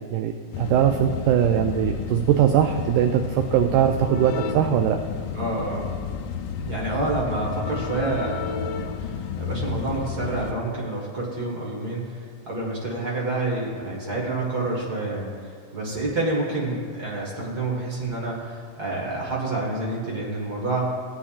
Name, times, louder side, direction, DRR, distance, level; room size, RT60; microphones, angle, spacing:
voice 1, 0.1-5.0, right 10 dB, 85° right, 5 dB, 1.8 m, -21 dB
sound 1, 0.5-10.5, left 7 dB, 80° left, 2.1 m, -31 dB
voice 2, 5.3-5.9 6.6-15.3 15.7-20.9, right 2 dB, 45° right, -3 dB, 1.2 m, -28 dB
18.0 x 8.6 x 2.4 m, 2.1 s
omnidirectional pair, 4.1 m